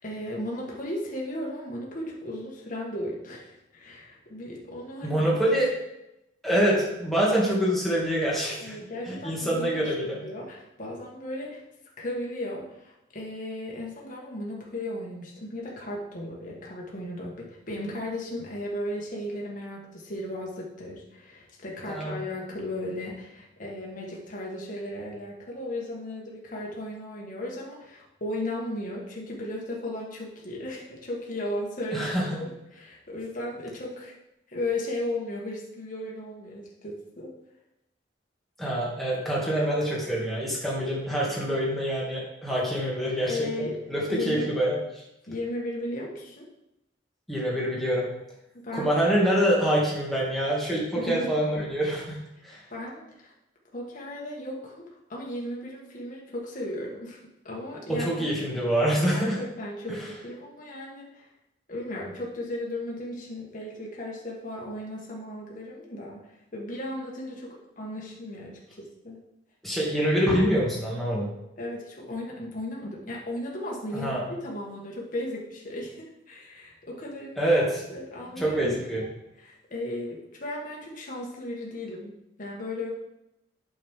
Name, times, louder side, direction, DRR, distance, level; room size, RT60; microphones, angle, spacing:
voice 1, 0.0-5.3 8.6-9.8 10.2-11.6 12.0-34.1 34.5-37.3 43.3-43.8 44.1-44.5 45.3-46.5 48.5-49.0 50.9-51.3 52.3-53.3 53.7-57.2 57.4-58.2 59.1-61.3 61.7-69.2 71.6-77.5 77.9-79.1 79.4-82.9, left 1 dB, 45° left, -3 dB, 1.7 m, -36 dB
voice 2, 5.0-5.7 6.4-8.8 9.1-10.2 21.9-22.2 31.9-32.4 38.6-43.5 43.9-44.8 47.3-48.1 48.7-52.6 57.9-59.4 59.9-60.0 69.6-71.3 73.9-74.2 77.4-77.9 78.4-79.0, equal, ahead, -6 dB, 2.5 m, -25 dB
8.8 x 6.5 x 3.8 m, 0.88 s
head